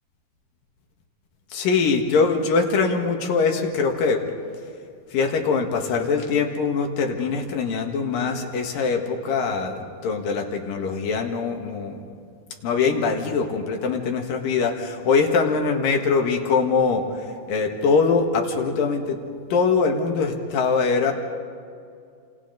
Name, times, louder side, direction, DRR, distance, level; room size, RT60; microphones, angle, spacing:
voice 1, 1.5-4.2 5.1-12.0 12.6-19.2 19.5-21.1, left 5 dB, 85° left, 3 dB, 3.4 m, -22 dB
29.0 x 28.0 x 4.0 m, 2.3 s
omnidirectional pair, 3.9 m